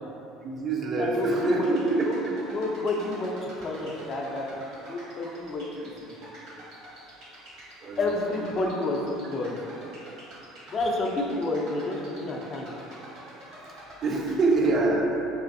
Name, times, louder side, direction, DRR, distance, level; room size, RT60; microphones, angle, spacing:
voice 1, 0.4-2.1 7.8-8.1 14.0-15.2, right 3 dB, 45° right, 0 dB, 0.4 m, -25 dB
voice 2, 1.0-1.7 2.1-2.2 2.5-4.5 4.8-6.3 8.0-9.6 10.7-12.7, left 2 dB, 40° left, -1 dB, 0.4 m, -30 dB
sound 1, 1.1-14.7, right 1 dB, 70° right, 0.9 m, -47 dB
2.5 x 2.4 x 2.5 m, 2.9 s
hypercardioid pair, 70°, 0 cm